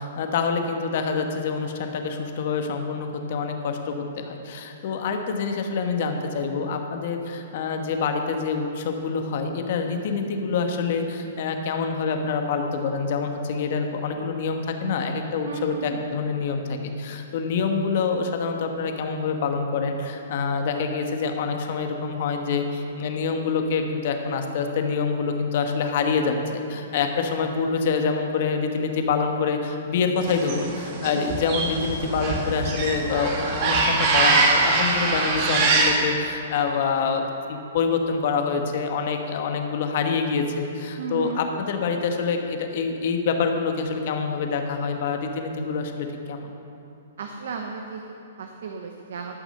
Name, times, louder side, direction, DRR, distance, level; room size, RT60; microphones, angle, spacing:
voice 1, 0.0-46.5, left 5 dB, 55° left, 5 dB, 1.3 m, -26 dB
voice 2, 15.4-16.0 31.1-31.3 41.0-41.4 47.2-49.4, right 5 dB, 70° right, 3 dB, 0.9 m, -34 dB
sound 1, 30.2-36.0, right 3 dB, 40° right, 1.9 m, -23 dB
13.5 x 6.1 x 6.7 m, 3.0 s
hypercardioid pair, 130°, 0 cm